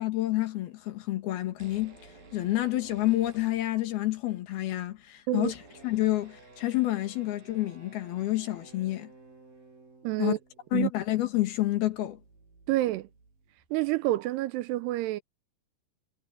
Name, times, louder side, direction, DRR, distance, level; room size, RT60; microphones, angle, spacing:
voice 1, 0.0-2.0 2.3-5.6 5.8-9.1 10.2-10.3 10.7-12.2, left 16 dB, 70° left, 3.3 m, -29 dB
sound 1, 1.4-4.2 4.5-4.6 4.7-14.2, right 3 dB, 55° right, 9.8 m, -55 dB
voice 2, 10.0-10.4 10.7-10.9 12.7-13.1 13.7-15.2, right 17 dB, 80° right, 2.7 m, -28 dB
omnidirectional pair, 4.9 m